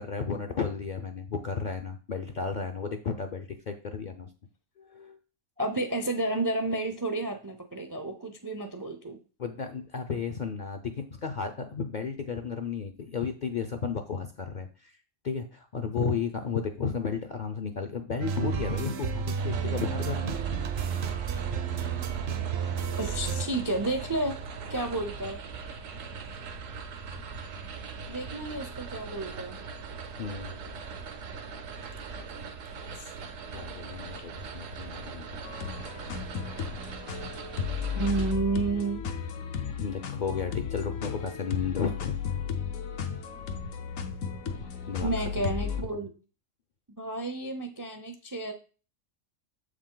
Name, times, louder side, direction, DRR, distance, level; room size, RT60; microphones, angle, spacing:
voice 1, 0.0-4.3 4.8-5.2 9.4-15.0 15.2-20.4 30.2-30.5 33.5-35.4 39.8-42.1 44.9-45.1, left 5 dB, 55° left, 6 dB, 0.5 m, -33 dB
voice 2, 5.6-9.2 23.0-24.4 24.7-25.4 28.1-29.6 33.0-33.1 38.0-39.0 45.0-46.1 47.0-48.5, right 2 dB, 30° right, 6 dB, 0.3 m, -31 dB
sound 1, 18.2-23.5, right 6 dB, 60° right, 0.8 m, -31 dB
sound 2, 19.4-38.3, right 5 dB, 75° right, 1.1 m, -40 dB
sound 3, 35.4-45.8, left 7 dB, 85° left, 1.2 m, -34 dB
7.2 x 4.9 x 3.8 m, 0.37 s
omnidirectional pair, 1.3 m